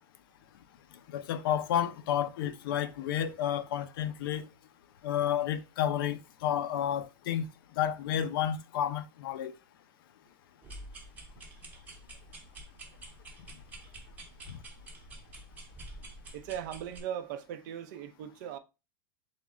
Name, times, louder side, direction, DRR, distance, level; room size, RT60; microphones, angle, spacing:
voice 1, 1.1-4.5 5.0-7.5 7.8-9.5 14.5-14.6, left 10 dB, 70° left, 0.5 m, -31 dB
sound 1, 10.6-17.0, right 1 dB, 15° right, 0.9 m, -48 dB
voice 2, 16.3-18.6, right 10 dB, 55° right, 0.6 m, -39 dB
3.5 x 3.1 x 3.6 m
supercardioid pair, 155°, 12 cm